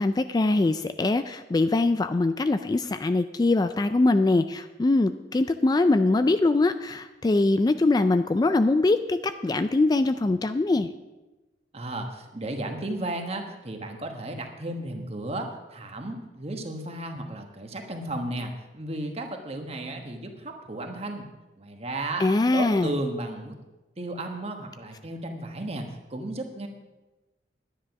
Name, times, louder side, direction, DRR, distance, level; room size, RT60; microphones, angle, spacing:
voice 1, 0.0-10.9 22.2-22.9, left 2 dB, 20° left, 10 dB, 0.3 m, -23 dB
voice 2, 11.7-21.3 21.6-22.2 22.5-23.5 24.0-26.7, right 1 dB, 35° right, 4 dB, 1.3 m, -34 dB
10.0 x 10.0 x 5.8 m, 1.1 s
head